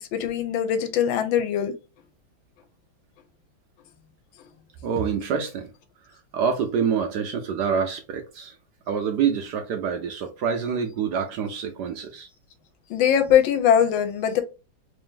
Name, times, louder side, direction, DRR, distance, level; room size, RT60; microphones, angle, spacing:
voice 1, 0.0-1.7 12.9-14.4, left 9 dB, 80° left, 1.4 m, -21 dB
voice 2, 4.8-5.7 6.3-8.5 8.9-12.3, right 7 dB, 70° right, 1.0 m, -26 dB
3.3 x 2.7 x 3.7 m
omnidirectional pair, 2.2 m